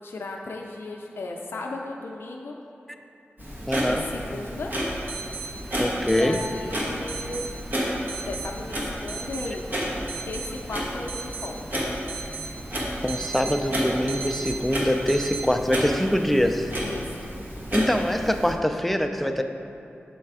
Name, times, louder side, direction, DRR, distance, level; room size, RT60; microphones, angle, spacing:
voice 1, 0.0-2.6 3.9-4.7 6.0-7.4 8.3-9.6 10.2-11.7 16.8-17.3, left 2 dB, 70° left, 0 dB, 0.4 m, -35 dB
Clock, 3.4-18.5, equal, 45° right, 1.3 m, -32 dB
voice 2, 3.7-4.0 5.8-6.4 13.0-16.7 17.7-19.4, equal, 5° left, 6 dB, 0.4 m, -24 dB
sound 1, 4.4-4.5 5.1-5.5 6.1-6.5 7.1-7.5 8.1-8.5 9.1-9.5 10.1-10.5 11.1-11.5 12.1-12.5 13.1-13.6 14.1-14.6 15.1-15.4, right 5 dB, 70° right, 0.6 m, -35 dB
6.9 x 3.2 x 4.8 m, 2.7 s
wide cardioid pair, 70°, 4 cm